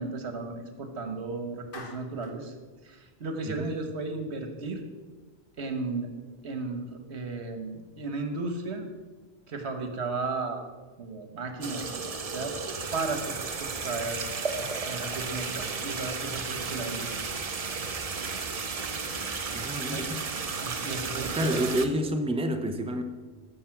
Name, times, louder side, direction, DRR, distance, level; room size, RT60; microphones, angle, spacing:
voice 1, 0.0-2.5 2.8-4.8 5.6-6.1 6.4-8.9 9.5-10.6 11.0-12.6 12.9-14.2 14.9-17.3 19.9-20.0 20.6-21.6, right 3 dB, 85° right, 6 dB, 1.5 m, -34 dB
Clapping, 1.7-2.4, left 3 dB, 55° left, 1.5 m, -45 dB
sound 1, 11.6-21.9, right 4 dB, 40° right, 0.7 m, -33 dB
voice 2, 19.5-20.2 21.3-23.0, equal, 5° right, 6 dB, 0.7 m, -29 dB
14.5 x 5.5 x 5.9 m, 1.3 s
omnidirectional pair, 1.1 m